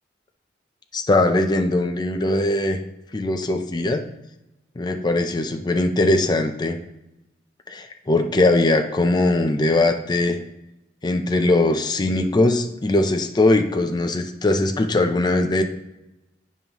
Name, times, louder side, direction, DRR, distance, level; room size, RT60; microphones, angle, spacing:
voice 1, 0.9-2.8 3.1-4.0 4.8-6.8 7.7-10.4 11.0-15.6, left 2 dB, 25° left, 5 dB, 0.4 m, -20 dB
9.4 x 5.3 x 2.9 m, 0.94 s
head